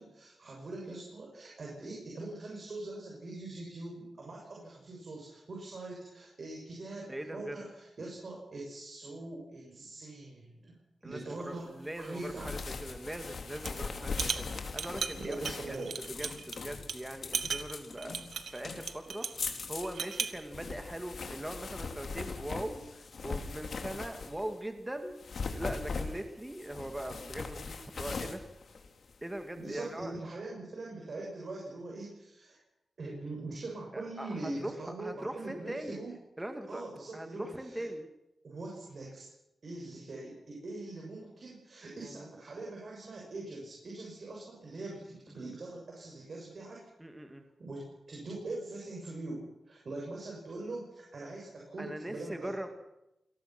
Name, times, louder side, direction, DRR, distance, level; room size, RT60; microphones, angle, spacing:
voice 1, 0.0-10.7 11.0-12.5 15.1-16.0 29.6-32.6 33.0-36.1 36.7-37.8 38.4-39.3 39.6-46.9 47.6-52.5, right 2 dB, 55° right, -2 dB, 7.4 m, -42 dB
voice 2, 7.1-7.6 11.0-14.5 14.7-15.4 15.7-15.8 16.1-18.2 18.5-19.3 19.7-25.2 25.5-28.4 29.2-30.1 33.9-34.7 35.0-36.0 36.4-36.8 37.1-38.1 42.0-42.3 47.0-47.4 51.8-52.7, right 1 dB, 10° right, 6 dB, 2.2 m, -41 dB
sound 1, 12.0-24.6 25.1-29.4, left 4 dB, 60° left, 2.6 m, -41 dB
sound 2, 13.5-13.8 14.1-16.6 16.9-17.0 17.3-19.4 19.8-20.4, right 6 dB, 75° right, 1.5 m, -36 dB
28.0 x 19.0 x 6.1 m, 0.88 s
cardioid pair, 90°, 0 cm